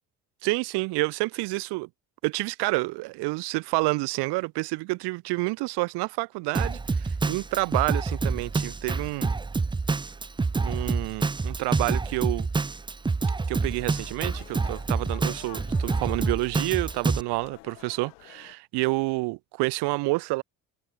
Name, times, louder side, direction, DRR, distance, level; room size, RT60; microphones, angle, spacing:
voice 1, 0.4-1.9 2.2-9.3 10.6-12.5 13.5-20.4, right 24 dB, 60° right, 0.6 m, -29 dB
Drum kit, 6.5-17.2, right 4 dB, 10° right, 0.5 m, -27 dB
sound 1, 13.6-18.6, left 27 dB, 80° left, 2.2 m, -50 dB
hypercardioid pair, 50°, 46 cm